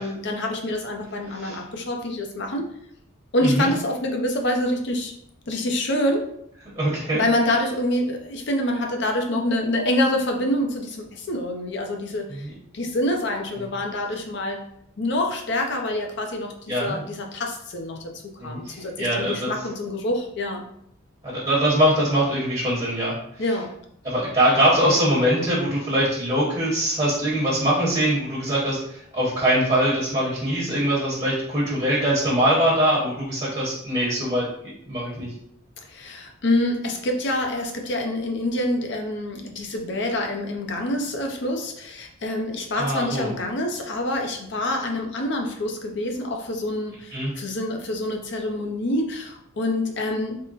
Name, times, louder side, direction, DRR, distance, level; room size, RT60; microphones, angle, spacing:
voice 1, 0.0-2.7 3.3-5.1 5.5-6.3 7.1-12.5 12.7-14.7 15.0-20.7 23.4-23.7 35.9-50.4, left 1 dB, 55° left, 3 dB, 0.6 m, -26 dB
voice 2, 6.8-7.2 12.3-12.5 16.7-17.0 18.4-19.5 21.2-23.1 24.0-35.3 42.7-43.3 47.1-47.3, right 1 dB, 25° right, -7 dB, 1.1 m, -22 dB
3.6 x 2.1 x 4.0 m, 0.70 s
head